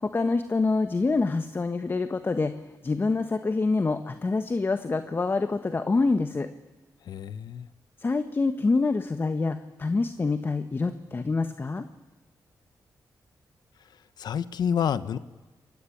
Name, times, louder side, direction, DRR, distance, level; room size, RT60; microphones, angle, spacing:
voice 1, 0.0-2.5 2.8-6.5 8.0-11.8, left 3 dB, 30° left, 9 dB, 1.4 m, -26 dB
voice 2, 7.1-7.7 14.2-15.2, left 8 dB, 80° left, 14 dB, 1.3 m, -28 dB
28.5 x 22.5 x 8.7 m, 1.2 s
cardioid pair, 85°, 7 cm